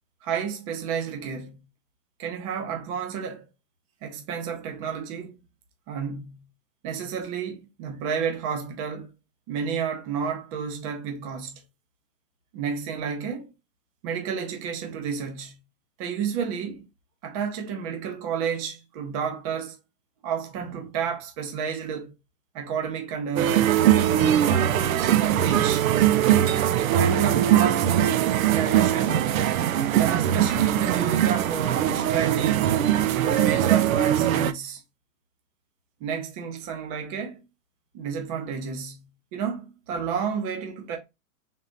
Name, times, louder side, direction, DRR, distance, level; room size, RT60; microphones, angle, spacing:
voice 1, 0.2-1.6 2.2-3.5 4.0-5.4 5.9-6.4 6.8-9.1 9.5-11.6 12.5-13.5 14.0-15.6 16.0-16.9 17.2-19.8 20.2-22.1 22.5-23.7 24.2-25.9 26.8-27.9 28.5-29.3 29.9-34.8 36.0-37.5 37.9-41.0, right 7 dB, 25° right, 0.7 m, -31 dB
sound 1, 23.4-34.5, right 11 dB, 65° right, 0.5 m, -21 dB
3.7 x 2.7 x 3.8 m
hypercardioid pair, 145°, 44 cm